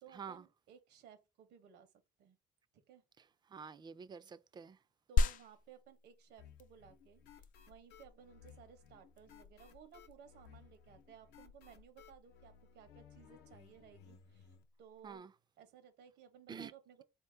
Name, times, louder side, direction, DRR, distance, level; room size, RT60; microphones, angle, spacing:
voice 1, 0.0-1.9 2.2-2.4 2.9-3.0 5.1-15.3 15.6-17.0, right 8 dB, 75° right, 1.1 m, -59 dB
voice 2, 3.5-4.8 15.0-15.3 16.5-16.7, right 6 dB, 25° right, 0.4 m, -48 dB
sound 1, 5.2-15.1, left 4 dB, 55° left, 0.4 m, -40 dB
sound 2, 6.4-14.6, left 8 dB, 80° left, 0.8 m, -60 dB
4.1 x 2.8 x 3.4 m
cardioid pair, 110°, 17 cm